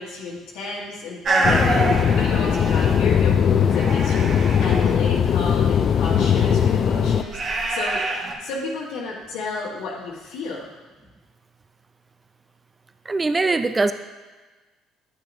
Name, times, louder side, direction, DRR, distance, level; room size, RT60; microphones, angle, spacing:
voice 1, 0.0-8.0 8.4-10.7, left 3 dB, 80° left, -4 dB, 1.3 m, -32 dB
sound 1, 1.2-3.4 3.7-4.9 6.1-8.3, right 2 dB, 50° right, 1.2 m, -26 dB
sound 2, 1.4-7.2, left 8 dB, 50° left, 0.4 m, -19 dB
voice 2, 13.1-13.9, right 3 dB, 25° right, 10 dB, 0.4 m, -21 dB
10.0 x 6.2 x 2.6 m, 1.3 s
supercardioid pair, 75°, 0 cm